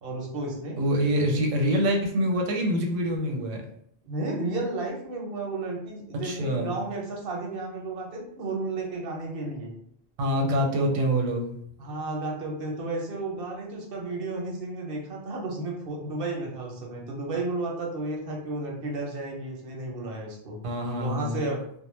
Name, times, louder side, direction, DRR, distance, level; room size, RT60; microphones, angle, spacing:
voice 1, 0.0-0.8 1.3-1.4 4.0-9.7 10.8-10.9 11.8-20.6 21.0-21.6, right 2 dB, 55° right, -1 dB, 0.8 m, -33 dB
voice 2, 0.8-3.6 6.2-6.7 10.2-11.5 20.6-21.6, equal, 85° right, 1 dB, 1.0 m, -25 dB
2.3 x 2.1 x 3.1 m, 0.68 s
omnidirectional pair, 1.2 m